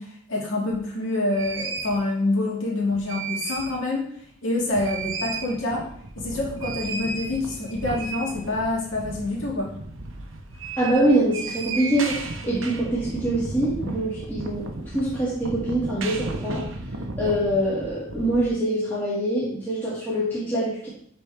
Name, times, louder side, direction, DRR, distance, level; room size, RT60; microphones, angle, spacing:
voice 1, 0.0-4.0 4.4-5.9 6.2-9.7, left 2 dB, 70° left, -3 dB, 2.2 m, -26 dB
sound 1, 0.7-0.8 1.3-2.0 2.8-3.8 4.2-4.3 4.6-18.5, right 3 dB, 70° right, 0.9 m, -34 dB
voice 2, 10.8-14.7 14.9-16.6 17.2-20.9, right 1 dB, 10° left, -10 dB, 2.3 m, -24 dB
11.5 x 4.3 x 3.5 m, 0.63 s
head